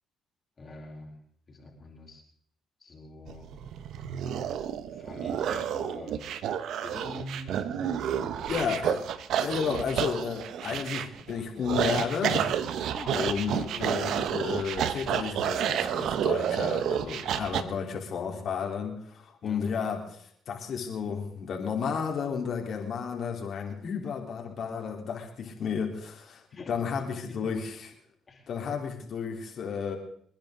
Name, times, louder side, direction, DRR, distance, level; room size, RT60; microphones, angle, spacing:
voice 1, 0.6-1.1 1.5-2.2 2.8-3.5 4.9-6.3 6.8-8.7 12.9-13.2 13.5-13.7 19.4-19.6 26.5-27.0 27.3-27.4 28.3-28.5, left 2 dB, 35° left, -1 dB, 4.6 m, -45 dB
sound 1, 3.3-17.6, right 9 dB, 75° right, 1.0 m, -30 dB
voice 2, 8.5-9.0 9.3-27.9 28.5-30.0, left 6 dB, 60° left, 1 dB, 3.9 m, -32 dB
28.5 x 10.5 x 4.0 m, 0.63 s
cardioid pair, 85°, 0 cm